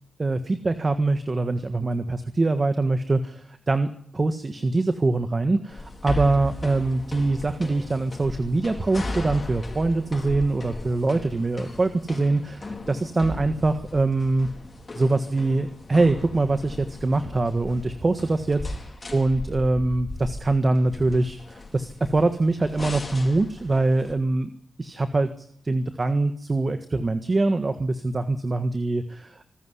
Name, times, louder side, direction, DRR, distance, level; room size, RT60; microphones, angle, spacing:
voice 1, 0.2-14.5 14.9-18.6 19.1-24.5 24.8-29.5, right 2 dB, 35° right, 9 dB, 1.5 m, -24 dB
sound 1, 5.7-24.1, left 1 dB, 35° left, 4.7 m, -37 dB
26.0 x 14.0 x 10.0 m, 0.63 s
wide cardioid pair, 95°, 0 cm